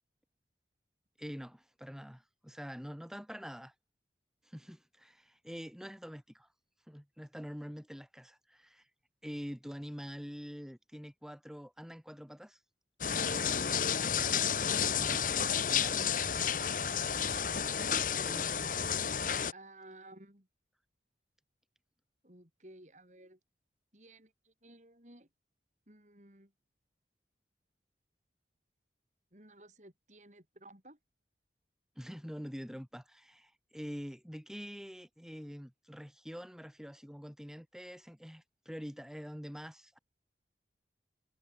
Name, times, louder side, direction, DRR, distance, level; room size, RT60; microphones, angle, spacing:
voice 1, 1.2-3.7 4.4-6.5 6.9-8.9 9.2-12.6 15.0-15.3 15.6-16.0 18.3-18.6 32.0-40.0, equal, 5° right, 7.8 m, -45 dB
sound 1, 13.0-19.5, left 7 dB, 50° left, 1.2 m, -31 dB
voice 2, 17.8-18.5 19.5-20.5 22.2-23.4 23.9-25.3 25.9-26.5 29.3-31.0, right 1 dB, 40° right, 6.3 m, -54 dB
head